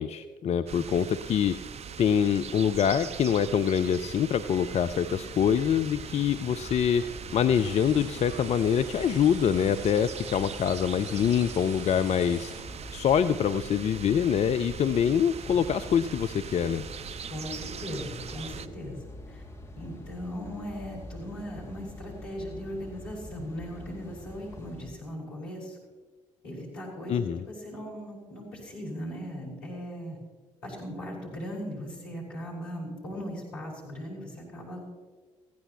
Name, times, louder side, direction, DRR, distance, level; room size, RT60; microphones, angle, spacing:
voice 1, 0.0-1.5 2.0-7.0 7.3-12.5 12.9-16.8 27.1-27.4, left 8 dB, 45° left, 11 dB, 0.5 m, -25 dB
sound 1, 0.7-18.7, right 7 dB, 45° right, 0.6 m, -41 dB
sound 2, 5.2-24.9, left 1 dB, 15° left, 2.4 m, -46 dB
sound 3, 7.5-12.6, right 4 dB, 80° right, 1.1 m, -47 dB
voice 2, 17.3-19.4 19.8-25.8 26.4-30.2 30.6-34.8, equal, 70° left, -5 dB, 4.6 m, -38 dB
19.0 x 15.5 x 3.0 m, 1.4 s
figure-of-eight pair, 40°, 16 cm